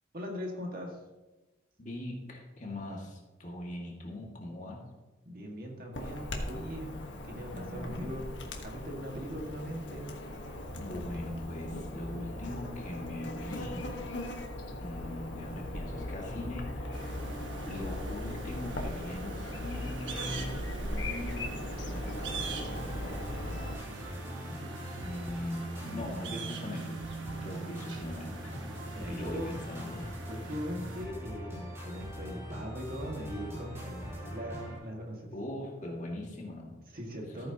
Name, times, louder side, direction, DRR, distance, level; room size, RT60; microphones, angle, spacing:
voice 1, 0.1-1.0 5.3-6.9 7.2-8.2 8.6-10.1 28.9-29.5 30.3-35.3 36.9-37.5, equal, 50° right, 0 dB, 1.9 m, -40 dB
voice 2, 1.8-4.8 7.5-8.1 10.8-13.9 14.8-17.1 17.7-23.5 25.0-27.0 27.4-28.5 29.1-30.1 35.3-36.8 37.2-37.5, left 1 dB, 40° left, -1 dB, 2.0 m, -41 dB
Chirp tweet / Buzz, 5.9-23.8, left 1 dB, 75° left, 1.5 m, -39 dB
sound 1, 16.9-31.1, right 3 dB, 80° right, 1.3 m, -43 dB
sound 2, 22.1-34.8, equal, 15° right, 3.9 m, -42 dB
14.5 x 9.0 x 2.9 m, 1.1 s
head